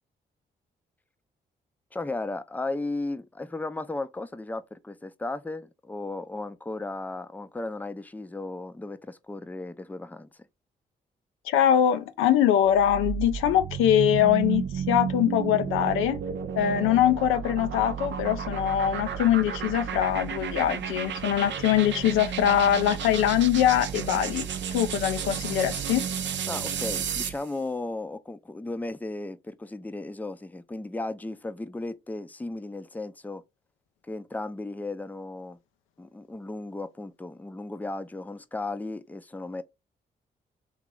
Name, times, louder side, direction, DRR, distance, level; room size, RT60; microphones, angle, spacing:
voice 1, 1.9-10.3 26.5-33.4 34.1-35.6 36.0-39.6, left 2 dB, 10° left, 0.5 m, -35 dB
voice 2, 11.4-16.2 16.6-26.1, left 10 dB, 85° left, 0.4 m, -23 dB
sound 1, 12.7-27.4, right 8 dB, 65° right, 0.6 m, -32 dB
3.1 x 2.9 x 3.6 m
hypercardioid pair, 40°, 20 cm